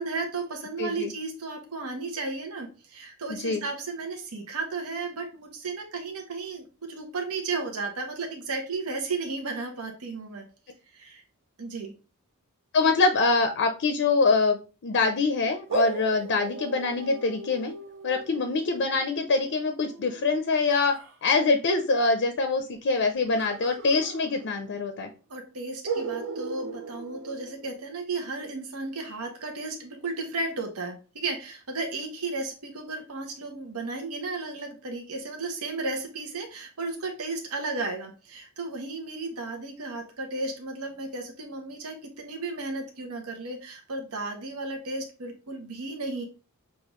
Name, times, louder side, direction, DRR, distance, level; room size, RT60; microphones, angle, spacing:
voice 1, 0.0-10.4 10.9-11.2 11.6-11.9 25.3-46.2, right 3 dB, 85° right, 3 dB, 0.9 m, -34 dB
voice 2, 0.8-1.1 3.3-3.6 12.7-17.7 18.0-21.0 21.2-25.1, left 3 dB, 55° left, 6 dB, 0.5 m, -24 dB
sound 1, 15.7-21.1 23.4-24.8 25.1-25.2 25.8-28.0, right 3 dB, 60° right, 0.7 m, -37 dB
6.6 x 2.5 x 3.0 m, 0.35 s
head